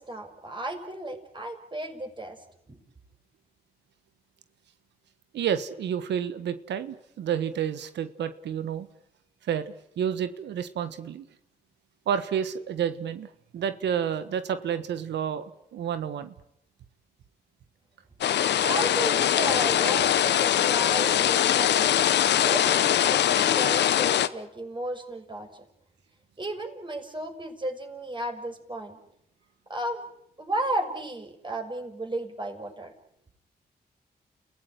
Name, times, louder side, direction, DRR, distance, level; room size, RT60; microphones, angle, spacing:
voice 1, 0.0-2.4 2.7-2.8 18.6-25.5 26.4-29.0 29.7-30.1 30.4-32.9, right 1 dB, 25° right, 4 dB, 6.4 m, -34 dB
voice 2, 5.3-8.9 9.5-11.2 12.1-15.4 15.7-16.3, right 8 dB, 90° right, 12 dB, 1.4 m, -30 dB
sound 1, 18.2-24.3, left 11 dB, 85° left, 1.0 m, -22 dB
29.5 x 16.5 x 9.3 m, 0.76 s
cardioid pair, 60°, 17 cm